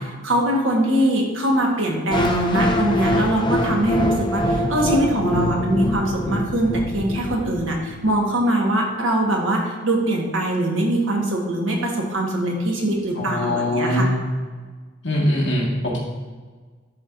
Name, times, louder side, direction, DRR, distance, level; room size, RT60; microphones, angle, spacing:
voice 1, 0.2-14.1, right 1 dB, 75° right, 0 dB, 1.3 m, -22 dB
sound 1, 2.1-8.1, equal, 25° left, 0.5 m, -24 dB
voice 2, 13.1-14.1 15.0-16.0, left 1 dB, 65° left, -3 dB, 1.6 m, -22 dB
11.0 x 4.4 x 2.6 m, 1.5 s
head